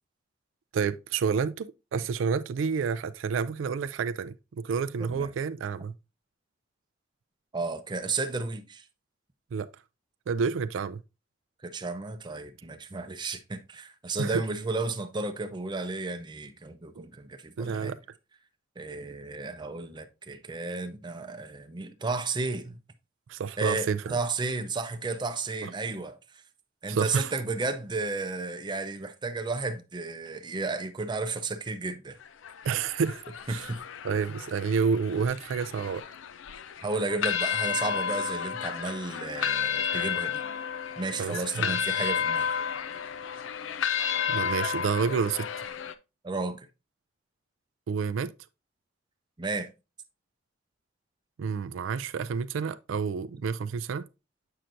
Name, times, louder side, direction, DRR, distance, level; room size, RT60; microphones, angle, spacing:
voice 1, 0.7-5.9 9.5-9.7 10.3-11.0 14.2-14.4 17.0-17.1 17.6-18.0 23.3-24.2 25.6-25.7 26.9-27.3 32.6-33.2 33.5-33.7 34.0-36.0 41.2-41.8 44.3-45.5 47.9-48.3 51.4-54.0, right 6 dB, 85° right, 0.4 m, -29 dB
voice 2, 5.0-5.3 7.5-8.8 11.6-17.9 18.8-22.8 23.6-26.4 26.8-32.2 33.5-33.8 36.8-40.4 41.0-42.5 46.2-46.7 49.4-49.7, right 3 dB, 25° right, 0.5 m, -33 dB
sound 1, 32.2-45.9, left 7 dB, 85° left, 0.5 m, -32 dB
7.6 x 5.7 x 2.5 m
head